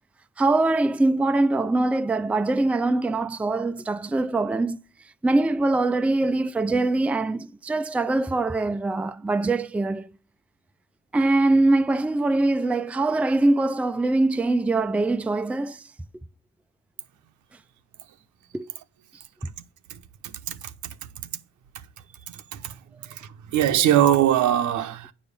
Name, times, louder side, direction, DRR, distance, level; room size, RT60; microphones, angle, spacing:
voice 1, 0.4-4.8 5.2-10.1 11.1-15.8 18.5-18.7, right 2 dB, 5° right, 0.4 m, -23 dB
voice 2, 19.9-20.6 20.8-20.9 22.3-22.8 23.1-25.1, right 11 dB, 75° right, 0.9 m, -22 dB
9.2 x 5.4 x 6.8 m
cardioid pair, 90°, 30 cm